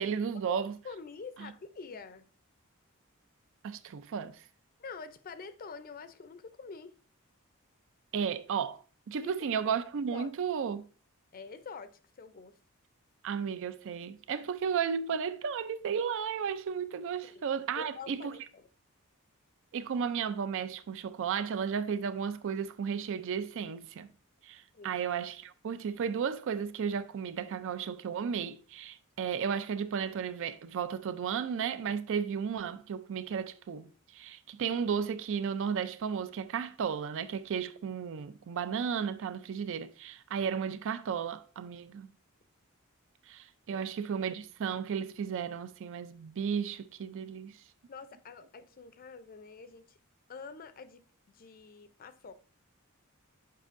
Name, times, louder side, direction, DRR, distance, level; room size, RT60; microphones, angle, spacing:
voice 1, 0.0-0.7 1.4-1.5 3.6-4.4 8.1-8.8 9.1-10.8 13.2-18.3 19.7-24.1 24.4-33.9 34.1-42.1 43.3-47.6, right 7 dB, 60° right, 0.4 m, -34 dB
voice 2, 0.8-2.3 4.8-7.0 9.2-9.3 10.1-10.3 11.3-12.6 17.2-17.4 17.8-18.6 24.7-25.0 43.7-43.9 47.9-50.0 50.3-51.0 51.3-52.3, left 4 dB, 40° left, 0.5 m, -46 dB
7.5 x 5.3 x 2.5 m
head